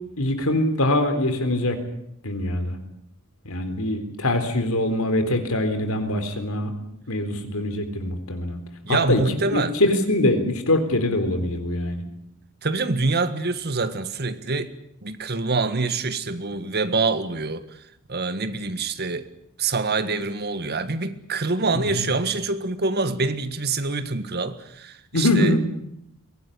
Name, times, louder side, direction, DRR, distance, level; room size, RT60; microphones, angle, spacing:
voice 1, 0.2-1.8 2.2-2.8 3.5-6.7 7.1-8.6 8.9-9.2 9.5-12.0 21.7-22.1 25.1-25.7, left 1 dB, 70° left, 3.9 m, -23 dB
voice 2, 8.9-9.8 12.6-14.7 15.0-17.7 18.1-19.3 19.6-25.7, right 3 dB, 45° right, 1.7 m, -25 dB
23.0 x 17.5 x 9.9 m
head